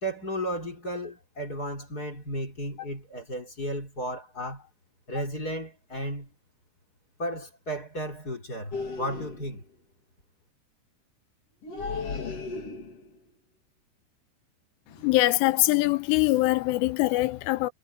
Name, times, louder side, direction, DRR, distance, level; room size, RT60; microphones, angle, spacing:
voice 1, 0.0-4.7 5.1-6.3 7.2-9.6, equal, 20° left, 3.7 m, -34 dB
sound 1, 8.7-9.6 11.6-13.2 14.9-15.2 15.6-15.9 16.3-16.5, left 4 dB, 40° left, 2.8 m, -36 dB
voice 2, 15.0-17.7, left 19 dB, 85° left, 3.5 m, -23 dB
omnidirectional pair, 5.6 m